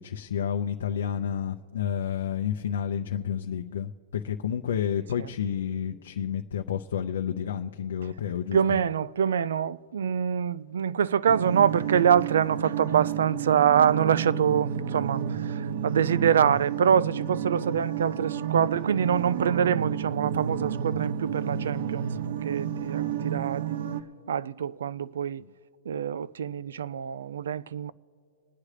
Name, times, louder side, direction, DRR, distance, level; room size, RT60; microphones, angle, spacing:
voice 1, 0.0-8.6, left 8 dB, 85° left, 0.6 m, -30 dB
voice 2, 8.5-22.1 22.4-23.8 24.3-25.4 25.9-27.9, right 8 dB, 90° right, 0.4 m, -25 dB
sound 1, 11.3-24.0, right 8 dB, 60° right, 0.7 m, -31 dB
27.0 x 9.7 x 3.3 m
supercardioid pair, 170°, 0 cm